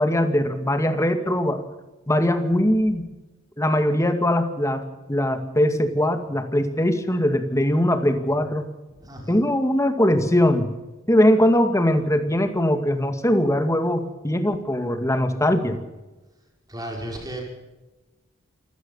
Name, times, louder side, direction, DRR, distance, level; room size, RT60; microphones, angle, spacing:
voice 1, 0.0-1.6 2.1-3.1 3.6-4.8 5.1-8.7 9.3-10.7 11.1-15.8, left 1 dB, 15° left, 7 dB, 2.2 m, -21 dB
voice 2, 9.0-9.4 16.7-17.4, right 1 dB, 20° right, 1 dB, 5.8 m, -34 dB
27.5 x 17.0 x 5.6 m, 1.1 s
head